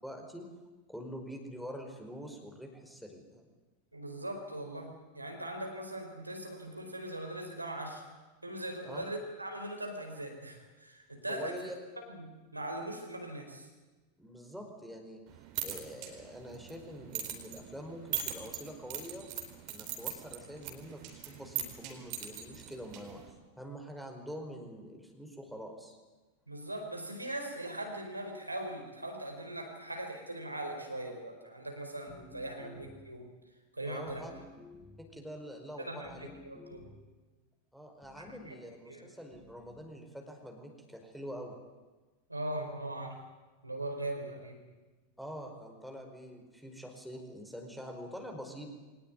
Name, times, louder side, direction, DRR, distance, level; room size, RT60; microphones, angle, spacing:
voice 1, 0.0-0.5 0.9-3.5 8.8-9.1 11.3-11.7 14.2-15.2 15.6-19.3 19.7-26.0 33.9-34.3 35.0-36.3 37.7-41.5 45.2-48.7, equal, ahead, 3 dB, 5.0 m, -45 dB
voice 2, 3.9-8.0 8.4-11.6 12.1-13.7 26.5-33.3 33.7-34.2 35.8-36.9 38.2-38.6 38.9-39.1 42.3-43.2 43.6-44.6, right 1 dB, 85° right, 3 dB, 4.8 m, -40 dB
sound 1, 15.3-23.3, right 10 dB, 45° right, 4.2 m, -41 dB
sound 2, 32.1-33.2 34.0-35.2 36.0-37.1 38.0-38.6 39.3-39.9, left 2 dB, 20° left, 5.1 m, -54 dB
23.5 x 19.0 x 9.7 m, 1.2 s
figure-of-eight pair, 90°, 0 cm